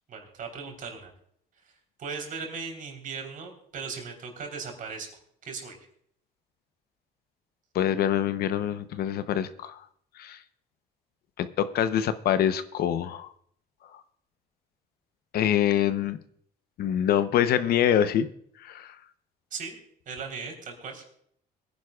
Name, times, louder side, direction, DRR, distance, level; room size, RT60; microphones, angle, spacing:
voice 1, 0.1-1.1 1.6-1.7 2.0-5.1 5.4-5.8 19.5-19.8 20.1-21.0, right 5 dB, 55° right, 3 dB, 3.7 m, -38 dB
voice 2, 7.7-9.8 10.2-10.4 11.4-13.3 15.3-16.2 16.8-18.3 18.6-18.9, left 10 dB, 65° left, 12 dB, 0.8 m, -25 dB
22.5 x 10.5 x 2.4 m, 0.65 s
cardioid pair, 110°, 17 cm